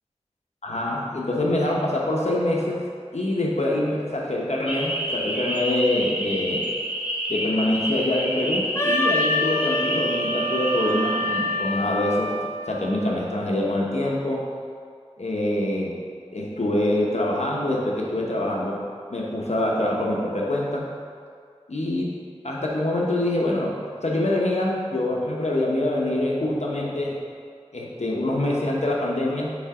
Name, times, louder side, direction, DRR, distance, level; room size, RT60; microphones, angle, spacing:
voice 1, 0.6-2.8 3.1-6.6 7.3-12.3 12.7-14.4 15.2-15.9 16.3-18.8 19.1-20.9 21.7-22.2 22.4-27.1 27.7-29.6, left 1 dB, 70° left, -3 dB, 0.9 m, -25 dB
sound 1, 4.7-11.8, equal, 10° right, 1.0 m, -29 dB
Wind instrument woodwind instrument, 8.7-12.6, left 1 dB, 20° left, 0.7 m, -26 dB
5.3 x 3.7 x 4.9 m, 2.1 s
wide cardioid pair, 45°, 12 cm